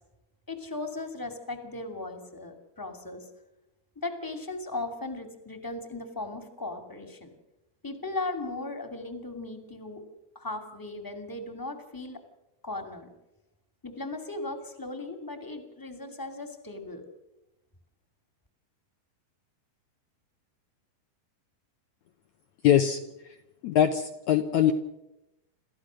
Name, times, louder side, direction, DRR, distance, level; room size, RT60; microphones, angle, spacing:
voice 1, 0.5-3.3 3.9-7.3 7.8-10.0 10.3-12.2 12.6-13.1 13.8-17.0, left 2 dB, 5° left, 7 dB, 1.6 m, -37 dB
voice 2, 22.6-23.0 23.6-24.7, left 10 dB, 75° left, 7 dB, 1.7 m, -22 dB
28.5 x 14.5 x 6.4 m, 0.92 s
omnidirectional pair, 4.4 m